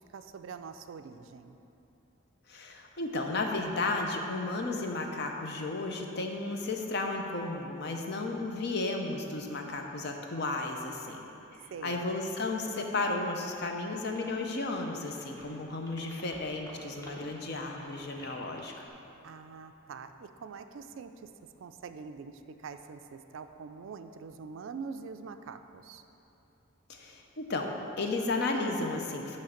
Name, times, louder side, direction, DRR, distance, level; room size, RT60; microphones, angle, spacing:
voice 1, 0.1-1.6 11.7-12.0 19.2-21.3 21.6-26.0, right 5 dB, 65° right, 9 dB, 0.3 m, -44 dB
voice 2, 2.5-11.3 11.8-18.7 26.9-27.7 28.0-29.4, left 2 dB, 50° left, 2 dB, 0.6 m, -33 dB
sound 1, 13.5-18.9, equal, 15° left, 0.8 m, -52 dB
8.3 x 3.2 x 6.4 m, 2.9 s
head